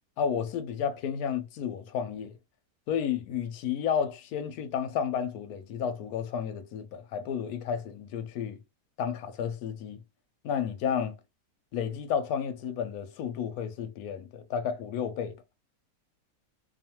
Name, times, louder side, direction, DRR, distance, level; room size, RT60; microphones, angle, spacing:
voice 1, 0.2-2.3 2.9-8.6 9.0-10.0 10.4-11.2 11.7-15.3, left 7 dB, 70° left, 1.0 m, -32 dB
2.6 x 2.4 x 2.8 m
omnidirectional pair, 1.8 m